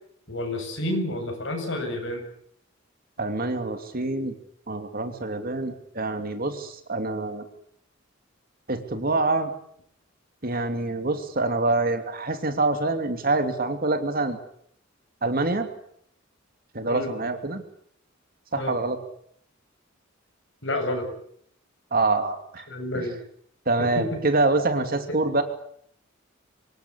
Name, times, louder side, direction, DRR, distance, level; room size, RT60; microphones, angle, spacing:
voice 1, 0.3-2.2 16.9-17.1 18.6-18.7 20.6-21.1 22.7-23.2 23.8-24.0, left 1 dB, 65° left, 3 dB, 7.9 m, -29 dB
voice 2, 3.2-4.3 4.7-7.4 8.7-9.5 10.4-14.4 15.2-15.7 16.7-17.6 18.5-19.0 21.9-22.7 22.9-23.0 23.7-25.4, right 2 dB, 45° right, 7 dB, 2.8 m, -25 dB
25.0 x 20.5 x 8.3 m, 0.67 s
head